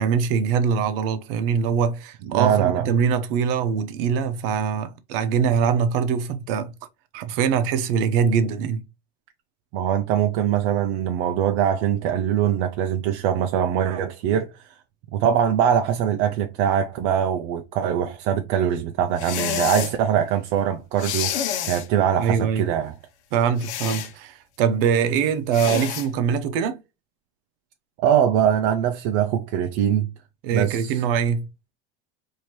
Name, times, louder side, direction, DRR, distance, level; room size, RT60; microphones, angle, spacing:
voice 1, 0.0-6.7 7.1-8.8 22.2-22.7 23.3-26.8 30.4-31.5, right 7 dB, 60° right, 0.8 m, -23 dB
voice 2, 2.3-2.9 9.7-14.7 15.1-22.9 28.0-30.1 30.5-31.0, right 9 dB, 40° right, 0.4 m, -22 dB
sound 1, 19.2-19.9 21.0-21.9 23.6-24.1 25.5-26.1, left 9 dB, 85° left, 0.9 m, -28 dB
4.4 x 2.7 x 3.0 m
supercardioid pair, 160°, 33 cm